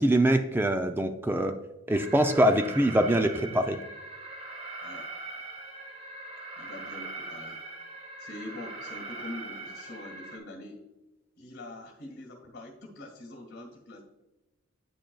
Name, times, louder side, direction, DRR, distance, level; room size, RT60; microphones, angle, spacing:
voice 1, 0.0-1.5 1.9-3.8, right 1 dB, 10° right, 6 dB, 0.4 m, -24 dB
Alarm, 1.9-10.4, right 2 dB, 30° right, 0.9 m, -41 dB
voice 2, 6.6-7.6 8.2-10.8 11.4-14.0, left 1 dB, 50° left, 1 dB, 1.7 m, -44 dB
9.0 x 7.3 x 2.3 m, 0.99 s
head